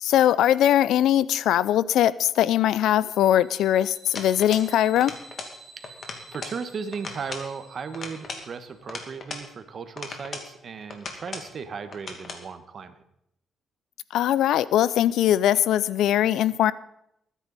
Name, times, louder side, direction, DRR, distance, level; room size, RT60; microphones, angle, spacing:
voice 1, 0.0-5.1 14.1-16.7, left 11 dB, 90° left, 19 dB, 0.4 m, -21 dB
sound 1, 2.9-8.9, right 3 dB, 80° right, 2.5 m, -51 dB
sound 2, 4.1-4.7 5.0-5.6 5.8-6.6 6.9-7.5 7.9-9.5 10.0-10.5 10.9-11.5 11.9-12.4, left 4 dB, 50° left, 2.3 m, -38 dB
voice 2, 6.3-12.9, right 5 dB, 50° right, 10 dB, 1.3 m, -36 dB
21.0 x 9.9 x 4.1 m, 0.78 s
cardioid pair, 100°, 0 cm